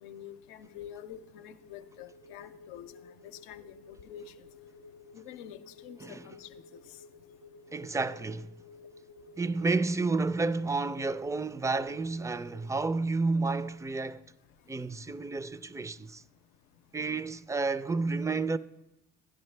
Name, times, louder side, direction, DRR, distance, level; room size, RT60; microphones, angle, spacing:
voice 1, 0.0-2.9 3.2-4.3 5.1-6.5, left 10 dB, 90° left, 0.6 m, -47 dB
sound 1, 0.6-12.6, left 3 dB, 85° right, 1.7 m, -54 dB
voice 2, 7.7-8.6 9.4-14.2 14.7-16.2 16.9-18.6, right 3 dB, 10° right, 0.4 m, -31 dB
12.5 x 10.0 x 3.3 m
supercardioid pair, 55°, 33 cm